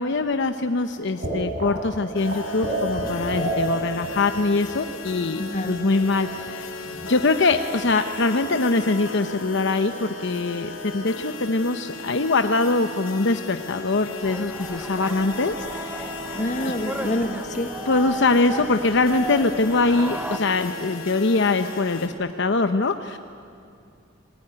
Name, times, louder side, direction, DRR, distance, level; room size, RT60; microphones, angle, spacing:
voice 1, 0.0-5.4 5.7-6.7 7.1-16.1 16.6-16.7 17.9-23.2, left 3 dB, 65° left, 8 dB, 0.8 m, -23 dB
sound 1, 0.9-4.8 5.0-5.1 5.4-6.5 6.8-7.2 7.5-7.6 7.9-8.0 8.2-8.5, right 1 dB, 50° right, 7.6 m, -30 dB
sound 2, 2.1-22.1, left 2 dB, 90° left, 2.8 m, -36 dB
voice 2, 5.4-5.8 16.4-17.7, left 1 dB, 40° left, 7 dB, 1.6 m, -27 dB
sound 3, 14.2-20.4, right 1 dB, 10° right, 1.0 m, -35 dB
29.5 x 21.0 x 9.8 m, 2.4 s
head